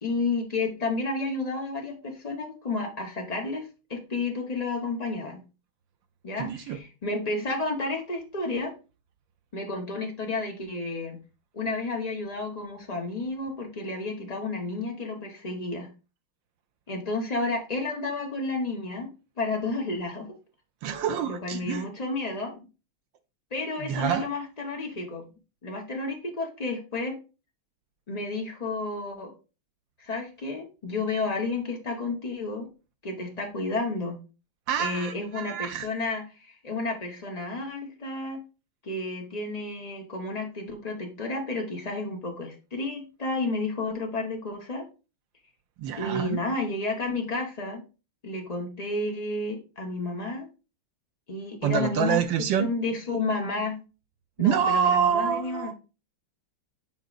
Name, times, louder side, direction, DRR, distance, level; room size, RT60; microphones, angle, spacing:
voice 1, 0.0-5.4 6.2-8.7 9.5-11.2 11.5-15.9 16.9-19.1 19.4-20.3 21.2-22.6 23.5-25.2 25.6-27.1 28.1-29.3 30.0-32.7 33.0-34.2 34.8-38.4 38.8-44.8 45.9-47.8 48.2-50.5 51.3-52.2 52.6-53.8 54.4-55.7, left 3 dB, 70° left, 0.3 m, -31 dB
voice 2, 6.4-6.8 20.8-21.8 23.8-24.3 34.7-35.9 45.8-46.4 51.6-52.7 54.4-55.7, right 8 dB, 75° right, 1.1 m, -26 dB
7.7 x 5.0 x 2.4 m
omnidirectional pair, 2.3 m